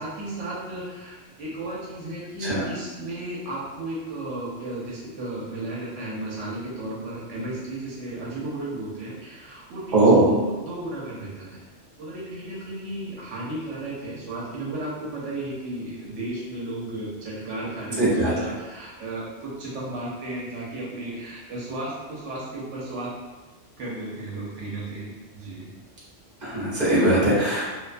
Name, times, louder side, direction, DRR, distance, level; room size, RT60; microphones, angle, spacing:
voice 1, 0.0-11.6 12.0-23.1 23.8-25.7, right 1 dB, 85° right, -6 dB, 1.0 m, -34 dB
voice 2, 9.9-10.3 18.0-18.3 26.4-27.7, right 2 dB, 40° right, -9 dB, 1.0 m, -20 dB
2.4 x 2.2 x 2.4 m, 1.2 s
omnidirectional pair, 1.2 m